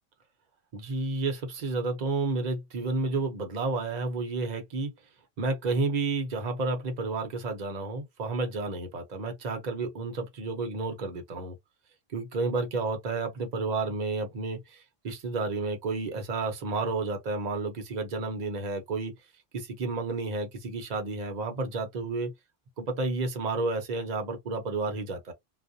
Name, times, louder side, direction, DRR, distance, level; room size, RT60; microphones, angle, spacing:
voice 1, 0.7-4.9 5.4-11.6 12.1-19.1 19.5-22.3 22.8-25.3, right 3 dB, 45° right, 0.8 m, -31 dB
2.4 x 2.1 x 2.6 m
omnidirectional pair, 1.1 m